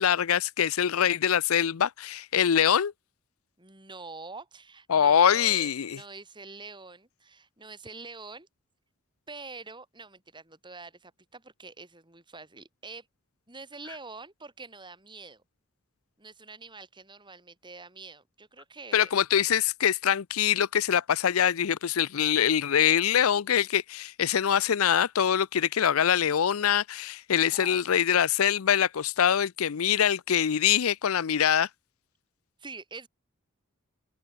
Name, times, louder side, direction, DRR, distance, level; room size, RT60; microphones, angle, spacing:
voice 1, 0.0-2.9 4.9-6.0 18.9-31.7, left 9 dB, 80° left, 0.5 m, -24 dB
voice 2, 3.6-8.5 9.3-13.1 13.5-15.4 16.2-19.1 27.5-28.0 32.6-33.1, right 3 dB, 20° right, 5.8 m, -45 dB
open air
head